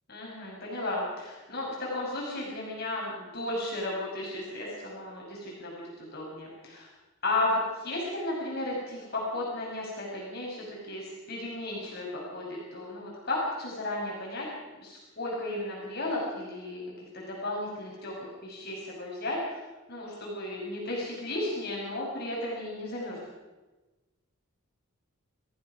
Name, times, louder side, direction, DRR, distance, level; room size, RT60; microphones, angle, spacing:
voice 1, 0.1-6.9 7.2-14.5 14.8-18.1 18.4-19.6 19.9-23.2, left 2 dB, 45° left, -4 dB, 6.1 m, -34 dB
27.0 x 16.0 x 6.1 m, 1.2 s
head